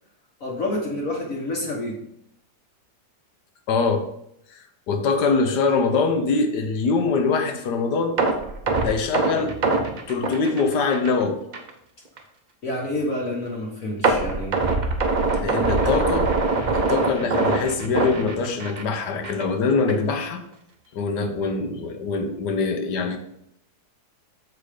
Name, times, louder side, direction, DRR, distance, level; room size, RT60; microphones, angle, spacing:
voice 1, 0.4-2.0 12.6-14.6, left 1 dB, 50° left, -2 dB, 1.5 m, -28 dB
voice 2, 3.7-4.1 4.5-8.2 8.8-9.6 10.1-11.4 15.4-16.3 16.7-20.4 20.9-23.2, left 4 dB, 70° left, 7 dB, 1.3 m, -23 dB
sound 1, 8.2-11.2 11.5-11.7 12.2-12.3 14.0-18.9 19.2-19.4 19.9-20.0, right 3 dB, 50° right, 0.5 m, -23 dB
6.9 x 4.7 x 4.9 m, 0.75 s
omnidirectional pair, 2.0 m